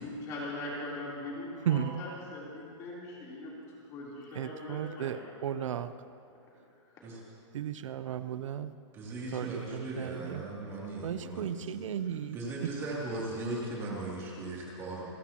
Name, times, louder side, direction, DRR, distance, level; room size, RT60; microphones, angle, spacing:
voice 1, 0.0-3.6 3.9-5.2, left 1 dB, 20° left, -5 dB, 3.5 m, -40 dB
voice 2, 1.7-2.0 4.3-5.9 7.5-8.7 9.3-10.4 11.0-12.7, right 9 dB, 85° right, 12 dB, 0.7 m, -35 dB
voice 3, 8.9-11.8 12.3-15.1, right 2 dB, 15° right, -5 dB, 2.8 m, -38 dB
29.0 x 14.5 x 3.0 m, 2.5 s
hypercardioid pair, 175°, 16 cm